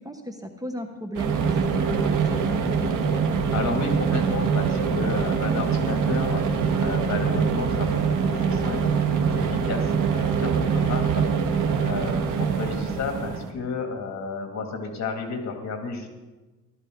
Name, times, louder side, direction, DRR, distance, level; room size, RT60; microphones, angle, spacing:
voice 1, 0.0-3.2 10.6-10.9, equal, 10° right, 5 dB, 1.0 m, -35 dB
sound 1, 1.1-13.5, right 6 dB, 90° right, 1.5 m, -24 dB
voice 2, 3.5-11.2 11.8-16.1, left 4 dB, 60° left, 3 dB, 2.6 m, -32 dB
15.5 x 13.0 x 3.9 m, 1.2 s
cardioid pair, 125°, 30 cm